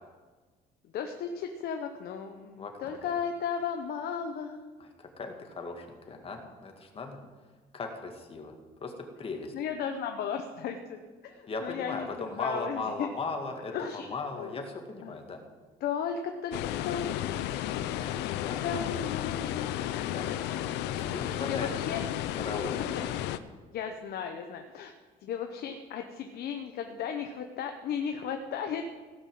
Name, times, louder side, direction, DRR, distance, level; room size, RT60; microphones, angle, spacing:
voice 1, 0.9-4.7 9.5-13.1 13.7-14.6 15.0-15.2 15.8-17.3 18.0-18.2 18.6-20.4 21.2-22.4 22.9-23.3 23.7-24.9 25.2-28.9, left 7 dB, 70° left, 5 dB, 1.0 m, -35 dB
voice 2, 2.6-3.1 4.8-7.2 7.7-8.5 8.8-9.5 11.5-15.4 18.4-18.6 20.1-20.3 21.0-21.7 22.4-22.9, left 3 dB, 35° left, 4 dB, 2.0 m, -38 dB
sound 1, 16.5-23.4, left 12 dB, 90° left, 0.6 m, -33 dB
16.5 x 5.7 x 7.7 m, 1.4 s
cardioid pair, 110°, 17 cm